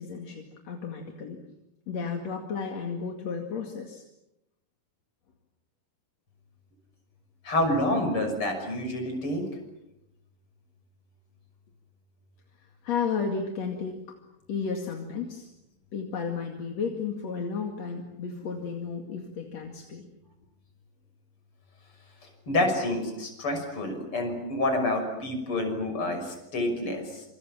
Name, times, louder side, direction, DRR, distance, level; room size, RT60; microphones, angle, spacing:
voice 1, 0.0-1.4 1.9-4.0 12.8-14.0 14.5-15.5 15.9-20.1, left 5 dB, 45° left, 2 dB, 2.8 m, -33 dB
voice 2, 7.4-9.4 22.5-27.2, left 1 dB, 30° left, 4 dB, 6.8 m, -28 dB
27.0 x 27.0 x 7.4 m, 0.89 s
omnidirectional pair, 5.1 m